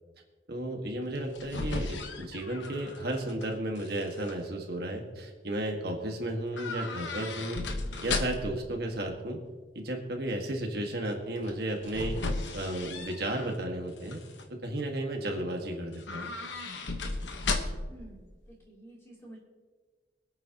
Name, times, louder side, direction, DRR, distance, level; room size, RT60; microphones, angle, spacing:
voice 1, 0.5-7.6 8.0-9.4 9.7-12.2 12.5-14.2 14.6-16.3, right 1 dB, 55° right, 2 dB, 1.7 m, -33 dB
sound 1, 1.1-3.4 3.8-4.3 6.5-8.6 11.4-13.6 14.0-14.5 15.9-18.0 18.3-18.4, left 3 dB, 75° left, 1.2 m, -35 dB
voice 2, 17.9-18.3 18.6-19.4, right 1 dB, 15° left, -4 dB, 3.0 m, -50 dB
24.5 x 8.8 x 2.9 m, 1.4 s
head